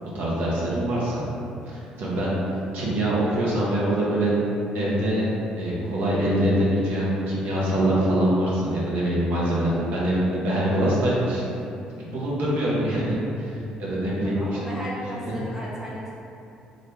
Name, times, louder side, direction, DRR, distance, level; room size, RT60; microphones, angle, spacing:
voice 1, 0.0-1.2 1.7-2.3 2.7-4.3 4.7-5.3 5.6-11.4 11.9-14.4 15.3-15.4, right 1 dB, 65° right, -6 dB, 0.9 m, -24 dB
voice 2, 14.2-16.1, equal, 15° right, -7 dB, 1.1 m, -35 dB
3.7 x 2.1 x 3.3 m, 2.7 s
hypercardioid pair, 55°, 3 cm